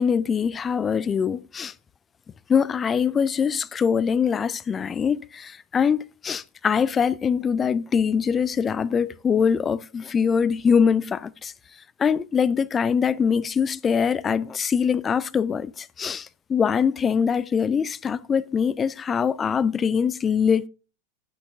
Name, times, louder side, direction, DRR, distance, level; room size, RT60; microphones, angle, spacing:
voice 1, 0.0-1.7 2.5-11.5 12.0-20.7, left 6 dB, 20° left, 0.4 m, -23 dB
17.0 x 6.3 x 2.6 m
figure-of-eight pair, 90°, 0 cm